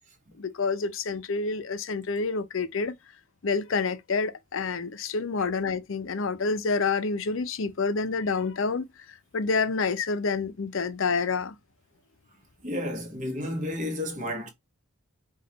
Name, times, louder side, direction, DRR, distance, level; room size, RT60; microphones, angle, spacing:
voice 1, 0.4-3.0 3.4-8.9 9.3-11.5, left 4 dB, 65° left, 0.6 m, -28 dB
voice 2, 12.6-14.5, left 1 dB, 35° right, 1.2 m, -31 dB
5.0 x 2.4 x 2.8 m
head